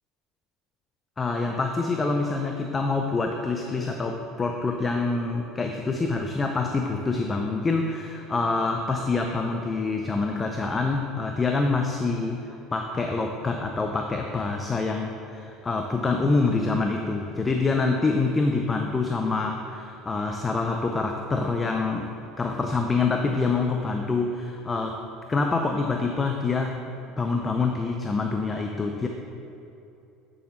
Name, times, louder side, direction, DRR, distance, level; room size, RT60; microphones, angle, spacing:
voice 1, 1.2-25.0 25.3-26.8 27.2-29.1, left 3 dB, 20° left, 3 dB, 0.5 m, -26 dB
10.0 x 6.2 x 3.1 m, 2.7 s
supercardioid pair, 100°, 0 cm